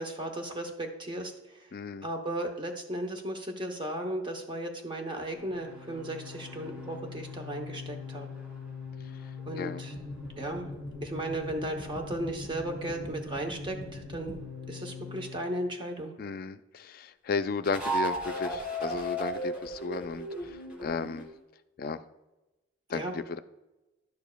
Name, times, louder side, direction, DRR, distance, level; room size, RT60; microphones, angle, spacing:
voice 1, 0.0-1.7 2.0-8.3 9.5-9.9 10.4-10.7 11.0-14.4 14.7-16.1 22.9-23.2, right 1 dB, 25° right, 2 dB, 0.8 m, -35 dB
voice 2, 1.7-2.1 9.6-9.8 16.2-21.3 21.8-22.0 22.9-23.4, left 4 dB, 50° left, 11 dB, 0.3 m, -34 dB
sound 1, 5.3-15.4 17.6-21.3, equal, 5° right, 2.3 m, -38 dB
10.5 x 7.1 x 2.2 m, 1.0 s
head